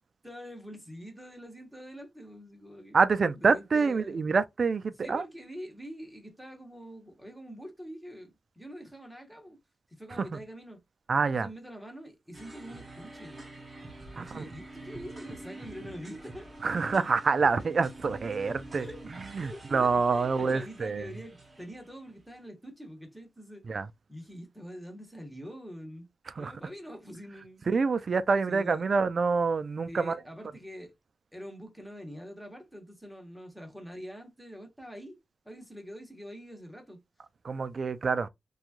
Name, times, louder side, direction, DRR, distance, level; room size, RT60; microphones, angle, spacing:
voice 1, 0.2-3.0 3.4-4.2 5.0-9.6 9.9-10.8 11.3-13.3 14.1-16.5 18.4-19.0 19.4-23.6 24.1-26.1 26.4-27.6 28.5-28.8 29.9-30.9 31.3-35.2 35.4-37.0, equal, ahead, 0.9 m, -45 dB
voice 2, 2.9-5.2 10.2-10.4 11.1-11.5 14.2-14.4 16.6-18.9 19.2-21.1 23.6-23.9 26.4-26.5 27.7-30.2 37.4-38.3, right 4 dB, 45° right, 0.3 m, -27 dB
sound 1, 12.3-22.4, right 2 dB, 30° right, 0.8 m, -47 dB
3.0 x 2.3 x 2.5 m
wide cardioid pair, 140°, 0 cm